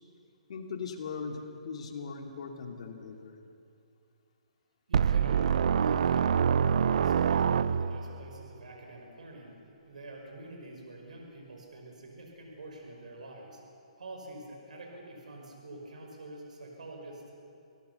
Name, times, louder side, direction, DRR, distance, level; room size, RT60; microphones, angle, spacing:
voice 1, 0.5-3.4, left 5 dB, 55° left, 3 dB, 2.6 m, -39 dB
sound 1, 4.9-8.2, right 7 dB, 65° right, 0.6 m, -25 dB
voice 2, 4.9-6.6 7.0-9.6 9.9-13.6 14.0-17.3, right 2 dB, 80° right, 1 dB, 5.3 m, -46 dB
26.5 x 17.5 x 7.0 m, 2.6 s
hypercardioid pair, 155°, 4 cm